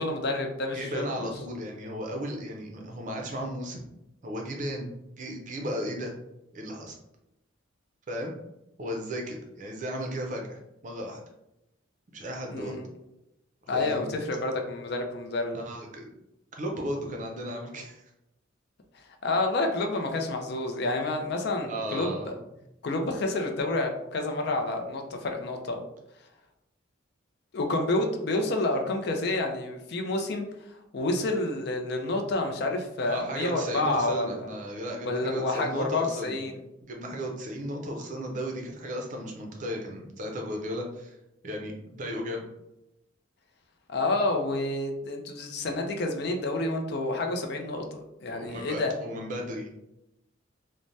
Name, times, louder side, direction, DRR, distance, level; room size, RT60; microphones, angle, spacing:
voice 1, 0.0-1.3 12.5-12.8 13.7-15.6 19.2-22.3 22.8-25.8 27.5-30.5 30.9-34.5 35.0-36.6 43.9-48.9, left 2 dB, 55° left, 4 dB, 0.4 m, -29 dB
voice 2, 0.7-3.9 4.2-6.2 6.5-7.0 8.1-8.3 8.8-11.2 12.1-12.8 13.7-14.1 15.5-16.1 16.5-18.0 21.7-22.3 33.1-36.4 36.8-41.2 41.4-42.4 48.3-49.7, equal, 40° right, 1 dB, 0.5 m, -35 dB
3.2 x 2.1 x 2.6 m, 0.86 s
head